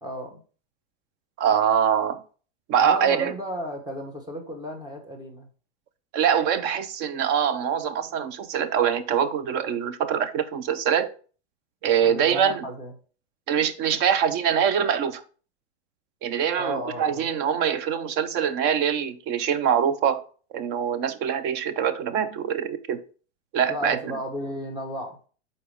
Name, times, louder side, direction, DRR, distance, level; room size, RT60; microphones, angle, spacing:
voice 1, 0.0-0.4 2.8-5.5 12.0-12.9 16.5-17.3 23.7-25.2, equal, 10° right, 1.3 m, -34 dB
voice 2, 1.4-2.2 2.7-3.3 6.1-11.1 11.8-12.6 13.5-15.2 16.2-20.2 20.5-23.0 23.5-24.2, right 8 dB, 30° right, 0.5 m, -24 dB
4.9 x 4.1 x 4.9 m
supercardioid pair, 145°, 35 cm